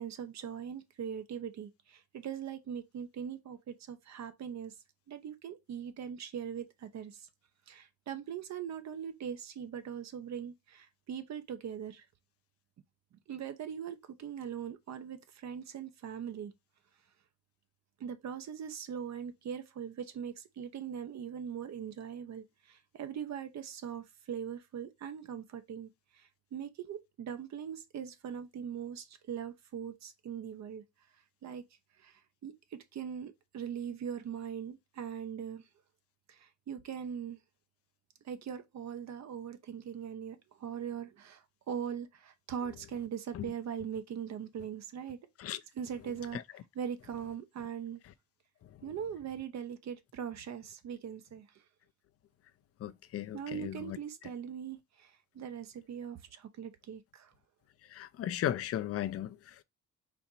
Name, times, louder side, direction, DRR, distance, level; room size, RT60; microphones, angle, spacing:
voice 1, 0.0-4.8 5.1-7.3 7.7-12.0 13.3-16.5 18.0-30.8 31.4-31.7 32.0-35.6 36.3-37.4 38.2-45.2 45.8-46.4 46.7-48.0 48.8-51.5 53.3-57.3, right 8 dB, 65° right, 0.9 m, -41 dB
voice 2, 52.8-54.0 57.9-59.6, left 11 dB, 50° left, 0.5 m, -36 dB
4.3 x 2.7 x 4.3 m
cardioid pair, 90°, 30 cm